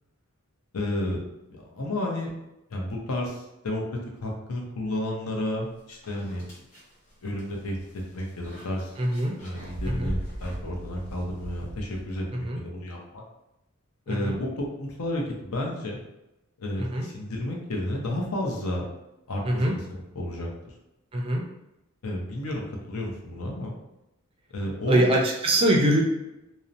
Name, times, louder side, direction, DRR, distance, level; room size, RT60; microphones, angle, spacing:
voice 1, 0.7-1.2 1.5-2.3 2.7-6.4 7.2-7.8 8.1-8.9 9.4-13.2 14.1-16.0 16.6-18.8 19.3-19.8 20.1-20.7 22.0-23.7 24.5-25.2, left 1 dB, 75° left, -1 dB, 0.6 m, -31 dB
sound 1, 5.5-5.6 6.0-12.4, right 1 dB, 35° left, 0.9 m, -39 dB
voice 2, 9.0-9.3 9.8-10.1 12.3-12.6 14.1-14.4 16.8-17.1 19.4-19.7 21.1-21.4 24.9-26.0, right 1 dB, 25° right, -1 dB, 0.4 m, -23 dB
2.7 x 2.0 x 2.5 m, 0.91 s
head